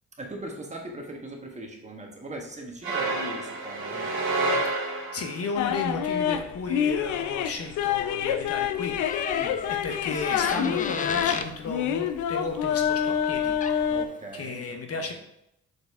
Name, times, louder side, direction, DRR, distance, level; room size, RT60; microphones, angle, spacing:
voice 1, 0.2-4.1 9.3-9.6 13.9-15.1, right 2 dB, 25° right, 1 dB, 1.5 m, -40 dB
sound 1, 2.8-5.5, right 2 dB, 40° right, 1.8 m, -28 dB
voice 2, 4.9-9.3 9.7-13.5 14.3-15.1, left 4 dB, 50° left, 5 dB, 0.9 m, -34 dB
sound 2, 5.5-14.0, left 9 dB, 75° left, 0.5 m, -27 dB
Door, 9.0-11.5 13.3-13.4 13.6-14.0, left 5 dB, 25° left, 0.4 m, -34 dB
6.8 x 4.1 x 3.5 m, 0.79 s
cardioid pair, 90°, 30 cm